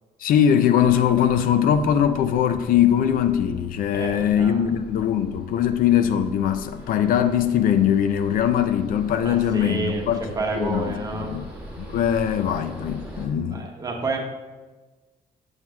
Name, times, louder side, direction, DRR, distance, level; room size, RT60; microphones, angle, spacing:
voice 1, 0.2-10.2 10.5-11.5 11.8-13.7, left 9 dB, 65° left, 9 dB, 0.4 m, -21 dB
sound 1, 0.7-13.3, equal, 10° right, 1.2 m, -41 dB
voice 2, 3.9-4.7 9.2-11.3 13.5-14.2, right 2 dB, 25° right, 1 dB, 0.9 m, -29 dB
7.8 x 7.2 x 2.3 m, 1.2 s
cardioid pair, 160°, 15 cm